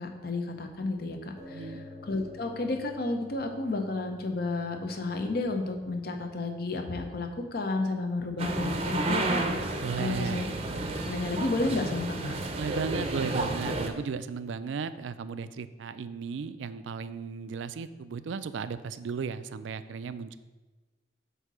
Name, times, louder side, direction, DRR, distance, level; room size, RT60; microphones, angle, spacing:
voice 1, 0.0-1.8 2.1-9.7 10.0-10.5 11.0-12.4, left 2 dB, 55° left, 5 dB, 0.7 m, -32 dB
sound 1, 1.4-10.5, left 2 dB, 20° left, 0.8 m, -52 dB
voice 2, 1.5-1.9 9.8-10.4 12.5-20.4, right 5 dB, 90° right, 13 dB, 0.4 m, -35 dB
sound 2, 8.4-13.9, right 2 dB, 30° right, 0.6 m, -31 dB
7.9 x 2.8 x 6.1 m, 1.2 s
head